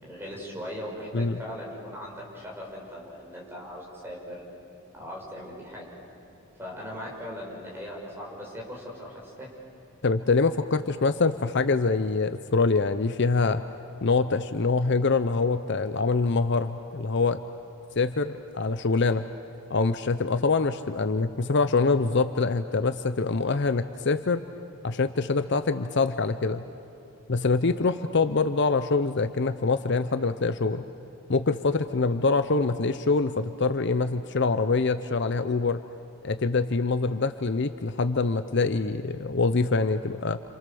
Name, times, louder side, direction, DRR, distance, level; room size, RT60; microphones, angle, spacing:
voice 1, 0.0-4.4 4.9-5.9 6.6-9.5, equal, 10° right, -3 dB, 5.6 m, -39 dB
voice 2, 10.0-13.6 14.0-17.4 18.0-19.2 19.7-24.4 24.8-26.6 27.3-30.8 31.3-35.8 36.2-40.4, left 3 dB, 50° left, 10 dB, 0.6 m, -25 dB
30.0 x 27.0 x 7.0 m, 2.7 s
head